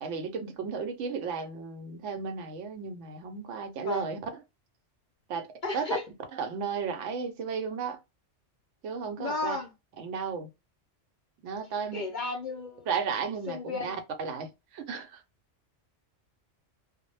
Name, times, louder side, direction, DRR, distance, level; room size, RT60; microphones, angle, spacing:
voice 1, 0.0-4.2 5.3-5.5 5.7-6.0 6.3-8.0 8.8-9.6 10.0-10.5 11.4-12.0 12.9-15.2, right 5 dB, 75° right, 0.9 m, -34 dB
voice 2, 5.6-6.0 9.2-9.7 11.9-12.9 13.5-14.0, left 4 dB, 60° left, 0.5 m, -33 dB
2.1 x 2.0 x 3.1 m
omnidirectional pair, 1.3 m